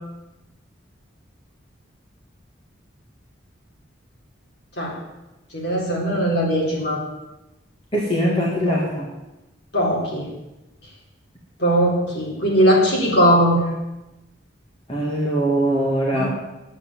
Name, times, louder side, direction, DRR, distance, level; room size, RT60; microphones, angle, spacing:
voice 1, 5.5-7.0 9.7-10.3 11.6-13.6 16.1-16.3, equal, 55° left, -3 dB, 4.0 m, -19 dB
voice 2, 7.9-9.0 14.9-16.2, right 1 dB, 25° left, -4 dB, 2.0 m, -21 dB
9.9 x 8.6 x 8.6 m, 1.0 s
head